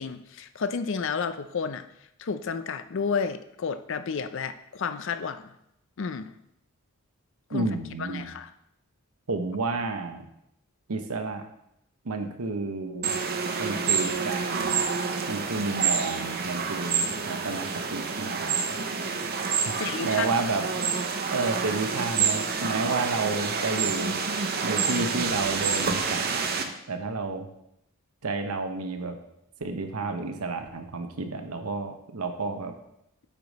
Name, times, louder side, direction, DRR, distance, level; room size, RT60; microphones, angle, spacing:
voice 1, 0.0-1.9 2.2-5.5 6.0-6.3 7.5-7.7 8.0-8.5 19.7-20.3, left 5 dB, 60° left, 11 dB, 0.5 m, -31 dB
voice 2, 7.5-8.3 9.3-10.3 10.9-11.4 12.0-13.2 13.6-14.8 15.3-18.8 20.0-20.7 21.3-24.1 24.6-27.5 28.2-29.2 29.6-32.7, right 3 dB, 85° right, 6 dB, 0.9 m, -31 dB
sound 1, 13.0-26.6, right 5 dB, 45° right, 0.7 m, -28 dB
8.5 x 5.0 x 4.1 m, 0.79 s
head